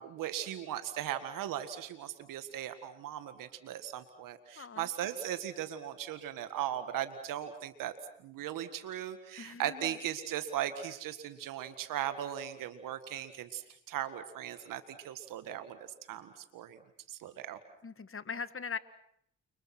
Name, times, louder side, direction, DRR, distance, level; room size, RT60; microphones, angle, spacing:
voice 1, 0.0-7.9 8.2-16.8 17.1-17.6, right 11 dB, 90° right, 10 dB, 1.8 m, -38 dB
voice 2, 4.6-4.9 9.4-9.9 17.8-18.8, left 6 dB, 40° left, 13 dB, 1.8 m, -40 dB
30.0 x 25.5 x 6.1 m, 0.70 s
supercardioid pair, 45°, 32 cm